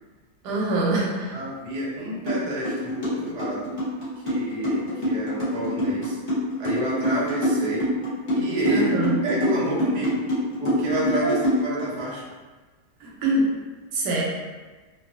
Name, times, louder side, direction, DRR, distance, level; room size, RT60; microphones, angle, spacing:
voice 1, 0.4-1.4 8.7-9.2 11.2-11.4 13.0-13.5 13.9-14.2, right 2 dB, 85° right, -3 dB, 1.2 m, -24 dB
voice 2, 1.3-3.7 4.2-6.2 6.6-7.9 8.3-8.9 9.2-10.2 10.6-12.3, right 1 dB, 55° right, -7 dB, 0.4 m, -29 dB
sound 1, 2.3-2.4 2.6-11.9, equal, 40° left, 1.0 m, -25 dB
2.6 x 2.3 x 2.5 m, 1.3 s
omnidirectional pair, 1.8 m